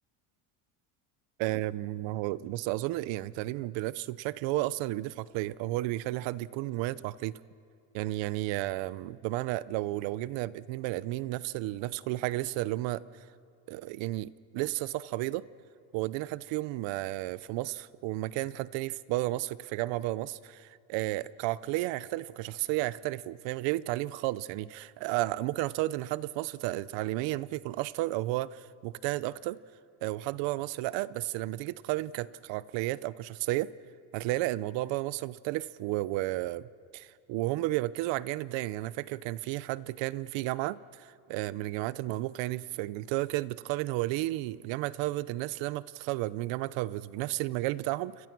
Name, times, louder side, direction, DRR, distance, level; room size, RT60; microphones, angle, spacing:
voice 1, 1.4-7.4 7.9-13.0 13.7-15.5 15.9-29.6 30.0-33.7 34.1-36.7 36.9-48.3, right 17 dB, 75° right, 18 dB, 0.9 m, -32 dB
29.5 x 26.5 x 6.1 m, 2.4 s
cardioid pair, 135°, 44 cm